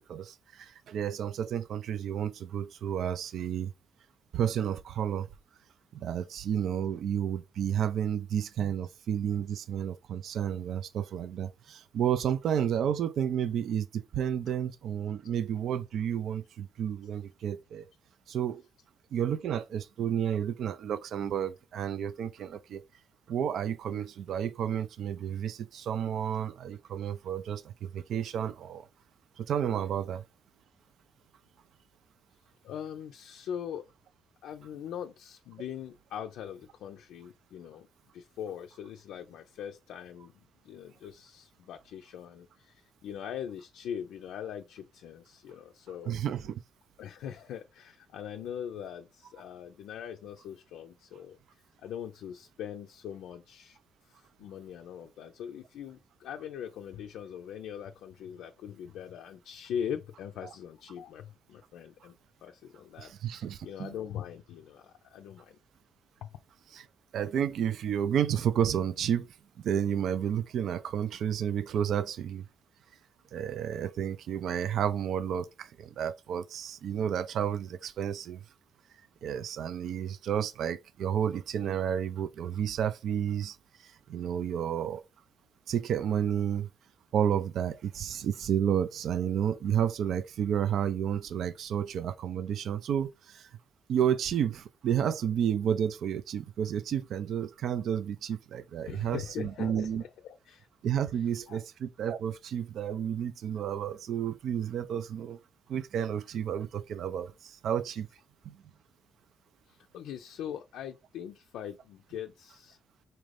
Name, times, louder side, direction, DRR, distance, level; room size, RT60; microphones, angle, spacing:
voice 1, 0.0-3.7 4.3-5.3 5.9-17.9 18.3-18.6 19.1-22.8 23.3-28.9 29.4-30.2 46.1-46.6 63.0-63.9 66.7-66.8 67.1-69.3 69.6-72.5 73.3-78.4 79.2-83.6 83.8-85.0 85.7-86.7 87.1-93.5 93.9-100.0 100.8-105.4 105.7-108.1 108.5-108.6, right 9 dB, 70° right, 0.3 m, -31 dB
voice 2, 32.6-33.8 34.4-37.9 38.1-46.2 47.0-53.8 54.0-65.6 66.2-66.3 98.8-100.7 101.2-101.6 109.7-112.8, left 9 dB, 90° left, 0.4 m, -41 dB
4.3 x 2.5 x 3.2 m
cardioid pair, 110°, 0 cm